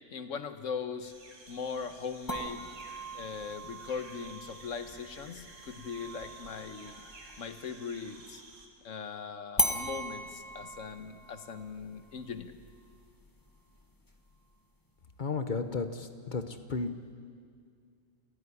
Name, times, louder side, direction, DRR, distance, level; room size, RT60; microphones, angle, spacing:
voice 1, 0.1-1.1 1.5-2.7 3.1-7.0 7.4-8.4 8.8-12.5, left 6 dB, 80° left, 9 dB, 1.5 m, -40 dB
sound 1, 1.0-8.7, right 2 dB, 80° right, 2.5 m, -53 dB
sound 2, 2.3-7.9 9.6-14.6, equal, 15° left, 1.4 m, -39 dB
voice 2, 15.2-16.9, left 4 dB, 40° left, 9 dB, 1.2 m, -33 dB
28.0 x 10.0 x 9.8 m, 2.2 s
omnidirectional pair, 1.3 m